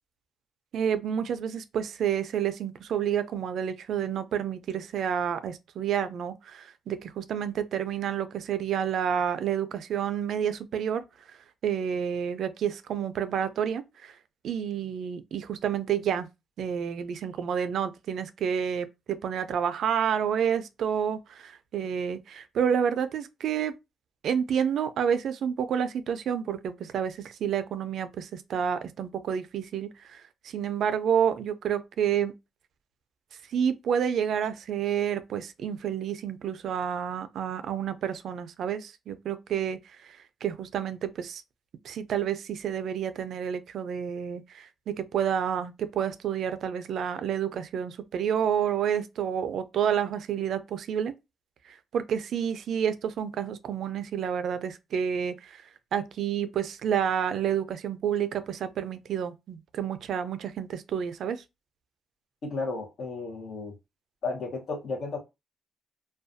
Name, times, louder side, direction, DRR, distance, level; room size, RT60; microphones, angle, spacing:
voice 1, 0.7-11.0 11.6-14.1 14.4-16.3 16.6-23.7 24.2-32.3 33.5-39.8 40.4-41.4 41.8-51.1 51.7-55.6 55.9-61.4, right 8 dB, 70° right, 0.3 m, -29 dB
voice 2, 62.4-63.7 64.2-65.2, left 3 dB, 60° left, 0.8 m, -33 dB
2.4 x 2.2 x 2.5 m
cardioid pair, 90°, 0 cm